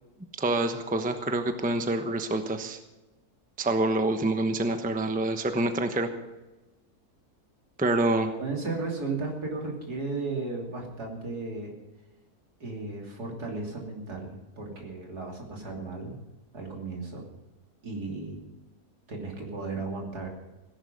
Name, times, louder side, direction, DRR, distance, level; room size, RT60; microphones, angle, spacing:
voice 1, 0.4-2.8 3.6-6.1 7.8-8.3, right 2 dB, 5° right, 7 dB, 0.8 m, -26 dB
voice 2, 8.4-11.8 12.6-16.1 16.5-17.3 17.8-18.4 19.1-20.3, right 3 dB, 80° right, 0 dB, 3.6 m, -35 dB
17.0 x 11.0 x 5.2 m, 1.1 s
omnidirectional pair, 1.7 m